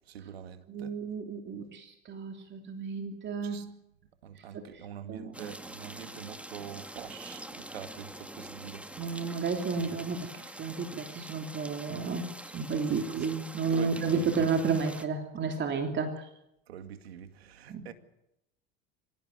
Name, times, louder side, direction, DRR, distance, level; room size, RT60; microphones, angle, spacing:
voice 1, 0.1-1.0 3.4-3.7 4.2-9.4 9.7-9.9 13.0-13.1 13.7-14.4 16.7-17.9, right 9 dB, 85° right, 2.2 m, -45 dB
voice 2, 0.7-3.7 4.5-4.8 5.1-5.3 9.0-12.3 12.5-16.3 17.7-17.8, right 5 dB, 35° right, 3.2 m, -32 dB
sound 1, 5.3-15.1, right 1 dB, 5° right, 2.2 m, -45 dB
25.5 x 16.0 x 9.5 m
hypercardioid pair, 85°, 30 cm